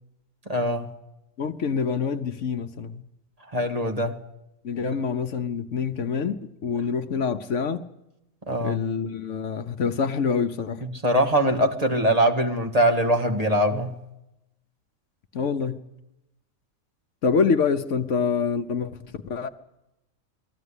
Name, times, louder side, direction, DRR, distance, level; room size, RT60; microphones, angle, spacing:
voice 1, 0.5-0.9 3.5-4.2 8.5-8.8 10.8-13.9, right 1 dB, 30° right, 1.7 m, -22 dB
voice 2, 1.4-3.0 4.6-7.8 8.6-10.8 15.3-15.8 17.2-19.5, left 5 dB, 65° left, 1.2 m, -26 dB
20.5 x 14.5 x 9.8 m
omnidirectional pair, 1.4 m